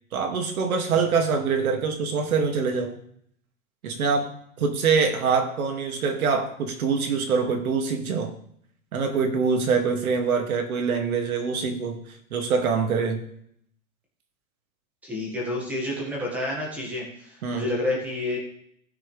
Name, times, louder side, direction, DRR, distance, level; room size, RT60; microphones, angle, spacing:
voice 1, 0.1-3.0 3.8-8.3 8.9-12.0 12.3-13.2 17.4-17.7, right 5 dB, 80° right, 4 dB, 2.3 m, -24 dB
voice 2, 15.0-18.4, left 1 dB, 5° right, -3 dB, 1.7 m, -29 dB
16.5 x 6.2 x 3.3 m, 0.67 s
supercardioid pair, 175°, 42 cm